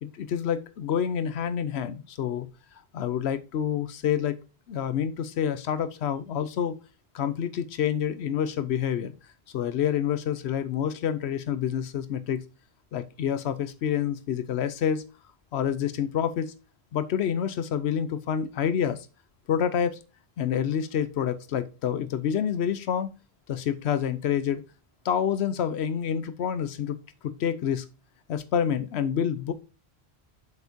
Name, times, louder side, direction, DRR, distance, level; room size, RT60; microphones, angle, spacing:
voice 1, 0.0-2.5 2.9-4.4 4.7-6.8 7.1-9.1 9.5-12.4 12.9-15.0 15.5-16.5 16.9-19.1 19.5-20.0 20.4-23.1 23.5-24.6 25.0-27.0 27.2-27.8 28.3-29.5, left 8 dB, 90° left, 12 dB, 1.0 m, -28 dB
8.0 x 7.1 x 2.7 m, 0.31 s
omnidirectional pair, 1.1 m